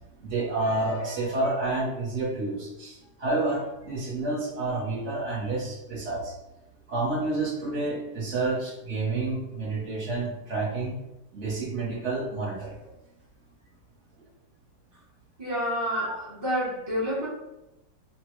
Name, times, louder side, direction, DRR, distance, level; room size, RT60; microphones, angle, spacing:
voice 1, 0.2-6.3 6.9-10.9 11.3-12.8 15.8-16.1, right 2 dB, 50° right, -6 dB, 1.1 m, -29 dB
voice 2, 15.4-16.1 16.4-17.3, equal, 35° right, -7 dB, 0.4 m, -28 dB
3.2 x 2.1 x 3.0 m, 0.93 s
omnidirectional pair, 2.0 m